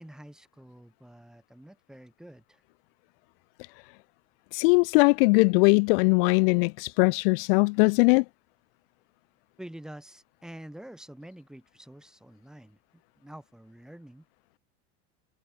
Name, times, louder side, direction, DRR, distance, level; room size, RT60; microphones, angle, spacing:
voice 1, 0.0-2.6 9.6-14.2, right 1 dB, ahead, 4.6 m, -47 dB
voice 2, 4.5-8.2, left 31 dB, 55° left, 0.7 m, -21 dB
cardioid pair, 175°, 33 cm